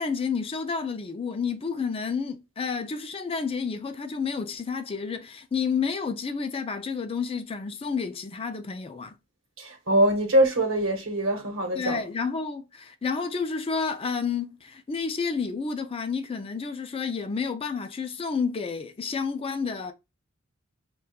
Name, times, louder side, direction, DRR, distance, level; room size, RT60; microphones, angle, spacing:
voice 1, 0.0-9.2 11.7-19.9, left 5 dB, 30° left, 0.4 m, -30 dB
voice 2, 9.6-12.0, right 1 dB, 70° right, 0.9 m, -23 dB
4.2 x 2.3 x 2.3 m
head